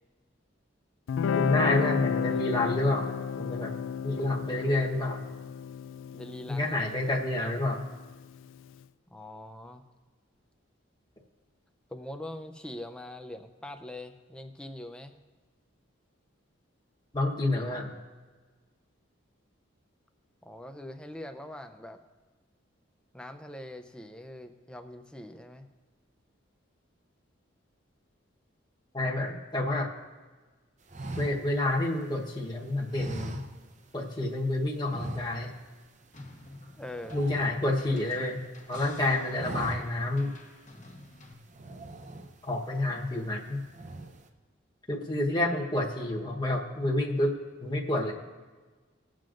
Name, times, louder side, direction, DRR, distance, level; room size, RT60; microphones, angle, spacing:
Guitar, 1.1-8.2, left 7 dB, 75° left, 0.3 m, -32 dB
voice 1, 1.3-3.7 4.0-5.2 6.5-7.8 17.1-17.9 28.9-29.9 31.2-33.4 33.9-35.5 37.1-38.4 38.7-40.4 42.4-43.6 44.9-47.3 47.6-48.1, left 2 dB, 20° left, -1 dB, 1.1 m, -29 dB
voice 2, 6.1-7.3 9.1-9.8 11.9-15.2 20.4-22.0 23.1-25.7 36.7-37.2, left 1 dB, 5° left, 7 dB, 0.5 m, -43 dB
sound 1, 30.9-32.4 32.9-34.0 34.2-34.4 34.8-35.7 36.0-36.2 36.5-38.3 38.7-38.9 39.2-40.2 40.6-40.7 41.5-42.6 43.1-43.4 43.7-44.3, right 2 dB, 35° right, 0.6 m, -41 dB
sound 2, 36.1-41.3, left 2 dB, 35° left, 1.4 m, -52 dB
21.0 x 7.6 x 2.5 m, 1.4 s
head